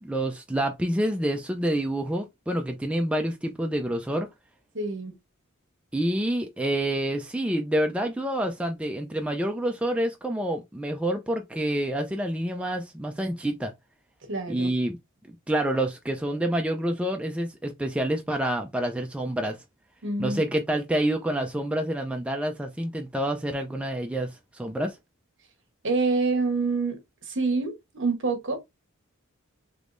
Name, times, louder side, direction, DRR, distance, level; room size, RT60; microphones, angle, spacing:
voice 1, 0.0-4.3 5.9-13.7 14.5-15.0 15.5-19.6 20.2-25.0, right 1 dB, 5° right, 0.4 m, -28 dB
voice 2, 4.7-5.1 14.3-14.7 20.0-20.4 25.8-28.6, right 3 dB, 60° right, 1.1 m, -27 dB
3.5 x 3.0 x 2.5 m
head